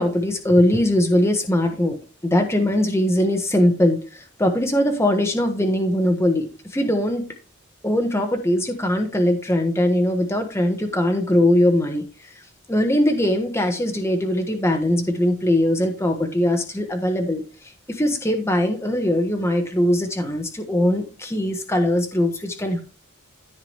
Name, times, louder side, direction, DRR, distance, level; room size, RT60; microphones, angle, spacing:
voice 1, 0.0-2.0 2.2-4.0 4.4-6.5 6.7-7.2 7.8-12.0 12.7-17.4 17.9-22.8, left 1 dB, 10° left, 4 dB, 1.3 m, -21 dB
13.5 x 4.8 x 3.4 m, 0.34 s
head